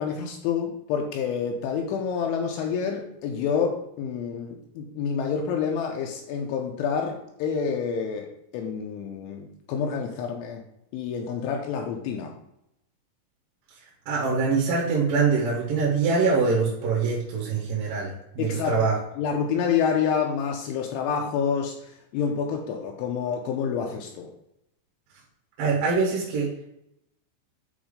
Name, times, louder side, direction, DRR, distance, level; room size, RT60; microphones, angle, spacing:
voice 1, 0.0-10.6 10.9-12.3 18.4-18.8 19.2-24.3, left 6 dB, 80° left, 2 dB, 2.9 m, -28 dB
voice 2, 14.1-19.0 25.6-26.5, right 4 dB, 60° right, -4 dB, 2.5 m, -24 dB
9.0 x 3.1 x 5.0 m, 0.80 s
omnidirectional pair, 5.9 m